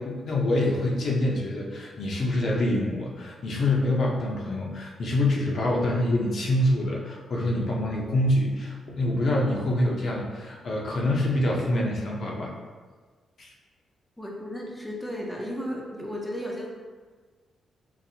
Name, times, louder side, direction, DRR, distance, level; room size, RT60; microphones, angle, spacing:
voice 1, 0.0-12.5 13.4-13.5, left 1 dB, 60° left, -2 dB, 0.6 m, -26 dB
voice 2, 14.2-16.7, equal, 5° left, -2 dB, 0.5 m, -34 dB
4.0 x 2.4 x 2.8 m, 1.4 s
cardioid pair, 120°, 0 cm